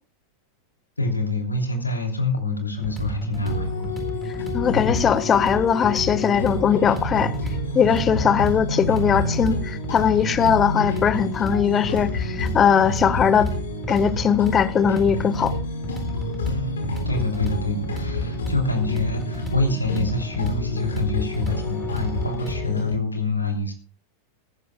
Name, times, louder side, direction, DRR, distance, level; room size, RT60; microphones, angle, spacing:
voice 1, 1.0-3.9 4.7-5.0 16.4-23.7, left 2 dB, 80° left, 3.1 m, -26 dB
sound 1, 2.8-22.6, right 2 dB, 5° right, 3.9 m, -32 dB
sound 2, 3.4-22.9, left 3 dB, 65° left, 5.5 m, -29 dB
voice 2, 4.5-7.3 7.7-13.5 13.9-15.5, left 7 dB, 25° left, 1.2 m, -20 dB
18.5 x 15.0 x 2.3 m
figure-of-eight pair, 90°, 0 cm